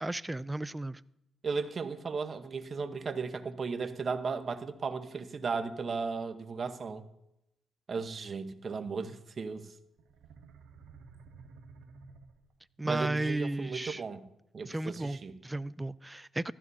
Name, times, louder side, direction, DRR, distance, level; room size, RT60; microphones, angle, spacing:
voice 1, 0.0-1.0 12.8-14.0 14.6-16.5, right 2 dB, 15° right, 0.4 m, -34 dB
voice 2, 1.4-7.0 7.9-9.7 12.8-14.2 14.5-15.3, right 5 dB, 45° right, 1.0 m, -35 dB
sound 1, 10.0-12.8, right 4 dB, 85° right, 1.1 m, -53 dB
15.5 x 13.5 x 2.7 m
cardioid pair, 75°, 0 cm